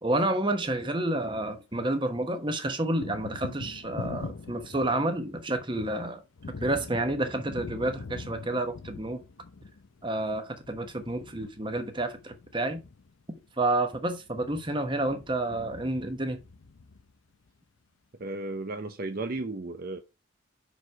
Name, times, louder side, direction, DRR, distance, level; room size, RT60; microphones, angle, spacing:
voice 1, 0.0-6.2 6.6-9.2 10.0-12.8 13.6-16.4, right 1 dB, 25° right, 1.1 m, -29 dB
Thunder, 0.7-2.0 2.2-17.5, left 4 dB, 85° left, 0.6 m, -44 dB
voice 2, 18.2-20.0, right 2 dB, 50° right, 0.7 m, -34 dB
6.2 x 5.2 x 4.7 m
head